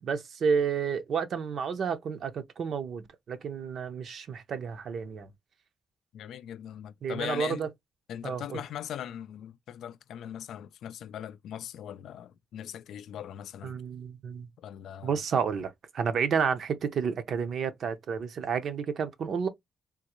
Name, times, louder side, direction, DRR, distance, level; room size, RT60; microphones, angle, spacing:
voice 1, 0.0-5.3 7.0-7.7 8.2-8.6 13.6-14.5 15.0-19.5, right 6 dB, 55° right, 0.7 m, -31 dB
voice 2, 6.1-7.7 8.1-13.8 14.6-15.1, left 10 dB, 85° left, 0.3 m, -40 dB
3.6 x 2.5 x 3.0 m
cardioid pair, 145°, 0 cm